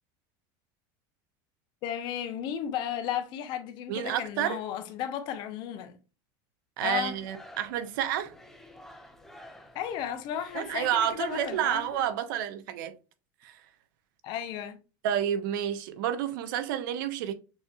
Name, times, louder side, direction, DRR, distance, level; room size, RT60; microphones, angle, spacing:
voice 1, 1.8-6.0 6.8-7.2 9.7-11.9 14.2-14.8, left 9 dB, 45° left, 0.7 m, -34 dB
voice 2, 3.9-4.6 6.8-8.3 10.5-12.9 13.4-13.6 15.0-17.3, right 10 dB, 75° right, 0.8 m, -30 dB
sound 1, 6.9-12.1, left 1 dB, 5° left, 0.6 m, -51 dB
6.3 x 2.8 x 2.3 m
supercardioid pair, 160°, 11 cm